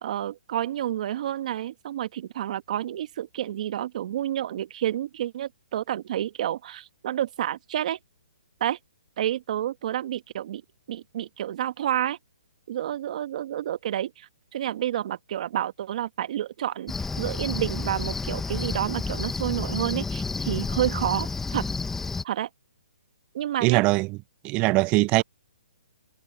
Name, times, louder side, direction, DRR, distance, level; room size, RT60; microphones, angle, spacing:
voice 1, 0.0-8.0 8.6-8.8 9.2-10.6 10.9-12.2 12.7-21.6 22.2-22.5 23.3-23.8, right 11 dB, 50° right, 1.5 m, -29 dB
Cricket, 16.9-22.2, left 4 dB, 5° left, 1.4 m, -30 dB
voice 2, 23.6-24.2 24.4-25.2, right 23 dB, 25° right, 0.5 m, -21 dB
hypercardioid pair, 145°, 5 cm